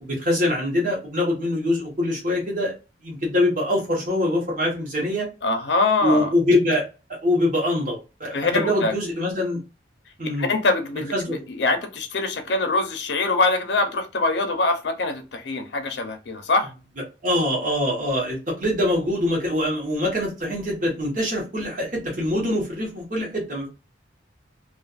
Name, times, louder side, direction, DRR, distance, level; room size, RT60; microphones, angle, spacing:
voice 1, 0.0-2.7 3.0-5.3 6.0-6.8 7.1-9.6 10.2-10.5 11.1-11.4 17.2-23.7, left 1 dB, 45° right, 1.1 m, -24 dB
voice 2, 5.4-6.3 8.3-8.9 10.4-16.7, left 3 dB, 70° left, 0.6 m, -23 dB
2.5 x 2.4 x 2.4 m
head